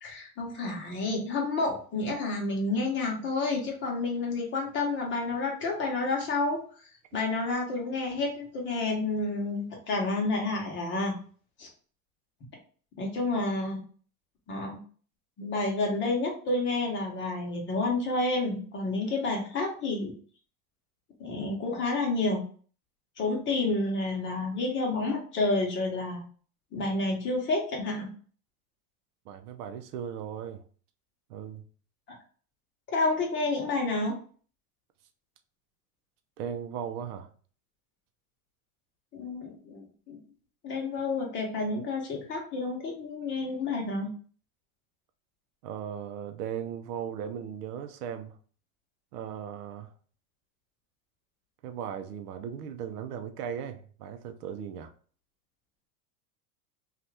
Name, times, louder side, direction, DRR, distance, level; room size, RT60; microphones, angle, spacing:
voice 1, 0.0-6.6 7.1-11.1 11.6-11.7 13.0-13.8 14.5-14.8 15.4-20.1 21.2-22.4 23.2-26.2 26.7-28.1 32.9-34.2 39.1-40.2 40.6-44.1, left 2 dB, 25° left, 0.8 m, -29 dB
voice 2, 29.3-30.6 31.3-31.6 36.4-37.3 45.6-48.3 49.1-49.9 51.6-54.9, right 8 dB, 85° right, 0.6 m, -37 dB
2.8 x 2.4 x 3.3 m
supercardioid pair, 135°, 45 cm